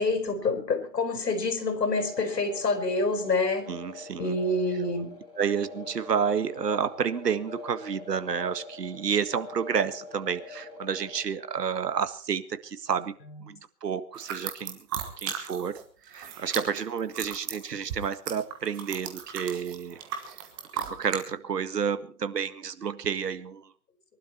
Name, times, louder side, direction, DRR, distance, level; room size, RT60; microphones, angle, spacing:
voice 1, 0.0-3.7 4.2-5.2, left 3 dB, 80° left, 5.4 m, -27 dB
sound 1, 1.9-11.2, left 3 dB, 10° left, 4.2 m, -44 dB
voice 2, 3.7-4.4 5.4-13.2 13.4-14.8 15.2-20.0 20.7-23.7, right 7 dB, 75° right, 1.9 m, -30 dB
sound 2, 14.1-21.2, right 8 dB, 15° right, 1.3 m, -36 dB
23.0 x 12.0 x 4.5 m
hypercardioid pair, 170°, 48 cm